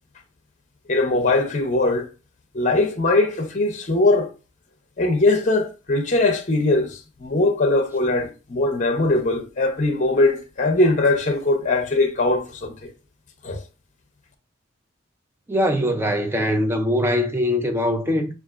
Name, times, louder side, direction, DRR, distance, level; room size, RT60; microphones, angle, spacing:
voice 1, 0.9-2.1 2.5-4.3 5.0-12.9 13.4-13.6, left 2 dB, 40° left, 0.7 m, -21 dB
voice 2, 15.5-18.3, left 1 dB, 10° right, 0.5 m, -22 dB
6.3 x 2.5 x 2.4 m
head